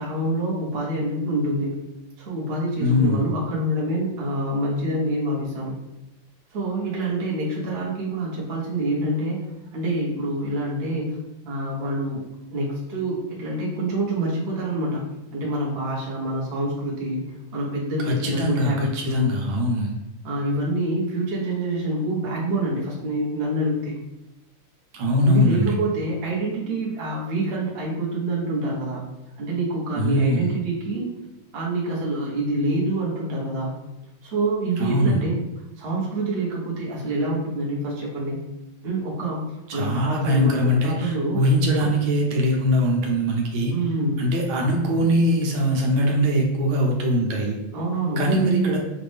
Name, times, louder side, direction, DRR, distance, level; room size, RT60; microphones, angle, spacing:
voice 1, 0.0-1.8 2.2-5.8 6.5-9.4 9.7-11.2 11.4-12.2 12.5-15.0 15.3-19.4 20.2-24.0 25.2-29.0 29.4-31.0 31.5-33.8 34.2-35.4 35.8-38.4 38.8-39.4 39.7-41.4 41.8-41.9 43.7-44.2 47.7-48.2, right 1 dB, 40° right, -4 dB, 1.0 m, -26 dB
voice 2, 2.8-3.2 18.0-19.9 24.9-25.7 30.0-30.5 34.8-35.2 39.7-43.7 44.2-47.6 48.2-48.8, equal, 80° right, 0 dB, 1.6 m, -21 dB
5.1 x 2.5 x 3.4 m, 0.94 s
omnidirectional pair, 2.2 m